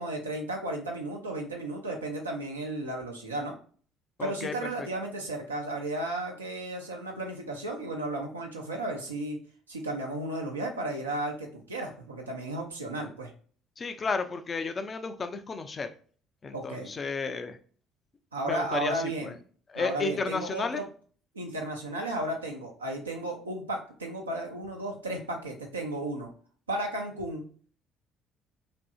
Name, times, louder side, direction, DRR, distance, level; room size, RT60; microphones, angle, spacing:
voice 1, 0.0-3.6 4.2-9.4 9.7-13.3 16.5-16.9 18.3-19.3 19.8-20.8 21.3-26.3 26.7-27.4, right 1 dB, 85° right, 1 dB, 0.5 m, -34 dB
voice 2, 4.2-4.9 13.8-15.9 16.4-17.6 18.4-19.3 19.7-20.8, left 4 dB, 35° left, 8 dB, 0.4 m, -33 dB
2.7 x 2.6 x 2.3 m, 0.43 s
figure-of-eight pair, 50°, 0 cm